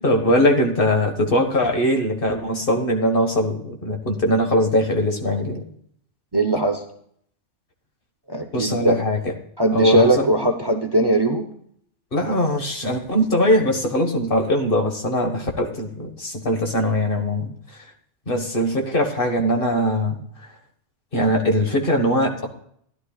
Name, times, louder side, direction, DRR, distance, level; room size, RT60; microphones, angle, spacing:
voice 1, 0.0-5.7 8.5-9.3 9.7-10.3 12.1-17.5 18.3-20.2 21.1-22.5, equal, 50° left, 3 dB, 1.7 m, -21 dB
voice 2, 6.3-6.8 8.3-9.0 9.6-11.4, right 1 dB, 25° right, 4 dB, 0.8 m, -19 dB
16.0 x 11.0 x 2.4 m, 0.65 s
omnidirectional pair, 1.2 m